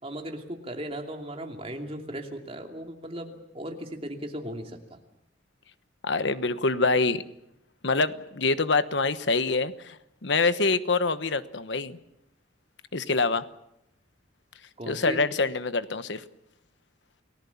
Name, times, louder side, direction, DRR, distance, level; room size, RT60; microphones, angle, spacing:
voice 1, 0.0-5.0 14.8-15.2, right 1 dB, 30° right, 3 dB, 2.9 m, -37 dB
voice 2, 6.0-7.2 7.8-10.0 10.2-12.0 12.9-13.4 14.9-16.2, left 3 dB, 65° left, 12 dB, 1.1 m, -25 dB
29.5 x 18.5 x 7.2 m, 0.85 s
head